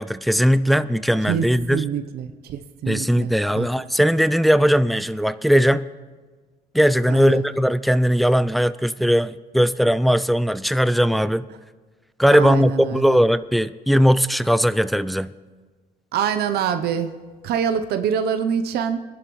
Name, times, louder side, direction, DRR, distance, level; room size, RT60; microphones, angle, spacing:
voice 1, 0.0-1.8 2.9-5.9 6.7-11.5 12.2-15.3, equal, ahead, 14 dB, 0.3 m, -19 dB
voice 2, 1.3-3.7 7.1-7.4 12.3-13.2 16.1-17.1 17.4-19.0, right 8 dB, 70° right, 8 dB, 0.8 m, -25 dB
23.5 x 11.0 x 3.1 m, 1.4 s
cardioid pair, 110°, 17 cm